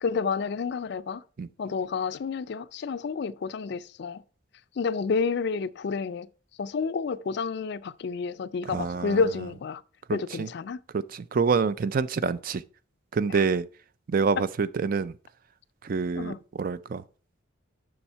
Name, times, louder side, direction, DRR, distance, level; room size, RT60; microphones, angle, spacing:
voice 1, 0.0-1.2 1.6-4.2 4.8-6.3 6.6-9.8 10.1-10.8 13.3-13.4 16.2-16.4, left 5 dB, 55° left, 0.4 m, -29 dB
voice 2, 8.7-9.2 10.1-10.5 11.1-12.6 13.1-13.6 14.1-15.1 15.8-17.0, right 5 dB, 45° right, 0.4 m, -26 dB
7.1 x 6.2 x 4.5 m
head